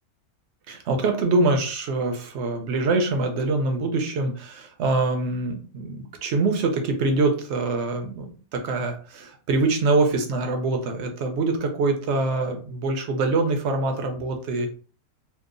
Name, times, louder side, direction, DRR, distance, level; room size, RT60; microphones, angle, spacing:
voice 1, 0.7-14.7, right 3 dB, 65° right, 4 dB, 0.7 m, -24 dB
2.8 x 2.1 x 2.5 m, 0.39 s
omnidirectional pair, 1.5 m